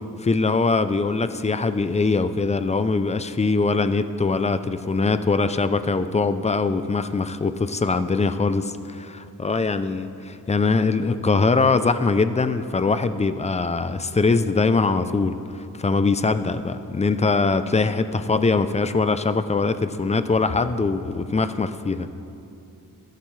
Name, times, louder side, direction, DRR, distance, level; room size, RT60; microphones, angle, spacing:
voice 1, 0.2-15.4 15.7-22.1, left 4 dB, 20° left, 11 dB, 0.3 m, -22 dB
25.0 x 10.5 x 3.2 m, 2.7 s
wide cardioid pair, 170°, 37 cm